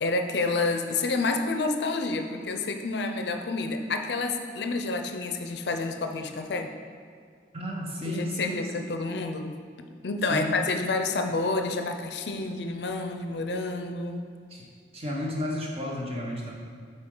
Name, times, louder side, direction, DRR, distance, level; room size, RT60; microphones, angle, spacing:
voice 1, 0.0-6.7 8.1-9.6 10.0-14.3, left 3 dB, 65° left, 6 dB, 0.5 m, -29 dB
voice 2, 7.5-8.7 10.3-10.6 14.5-14.7 14.9-16.5, left 1 dB, 35° right, -2 dB, 1.0 m, -32 dB
7.9 x 4.5 x 3.8 m, 2.1 s
head